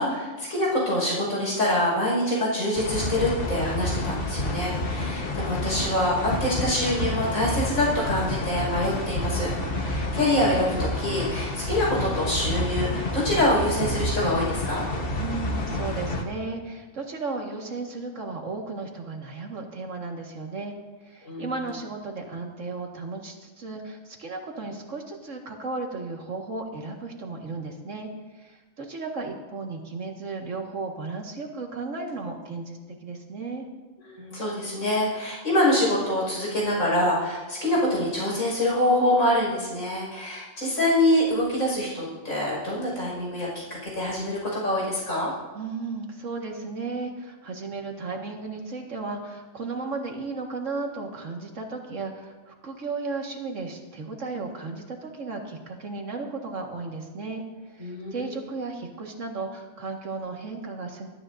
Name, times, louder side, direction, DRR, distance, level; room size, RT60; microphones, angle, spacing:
voice 1, 0.0-14.8 21.2-21.5 34.0-43.5 43.8-45.3 57.8-58.3, left 1 dB, 85° left, -4 dB, 5.9 m, -25 dB
sound 1, 2.8-16.2, left 1 dB, 45° left, 1.4 m, -29 dB
voice 2, 15.2-20.7 21.0-33.7 45.5-57.4 57.7-61.1, right 3 dB, 65° right, 1 dB, 2.1 m, -35 dB
24.0 x 13.0 x 2.6 m, 1.3 s
omnidirectional pair, 1.4 m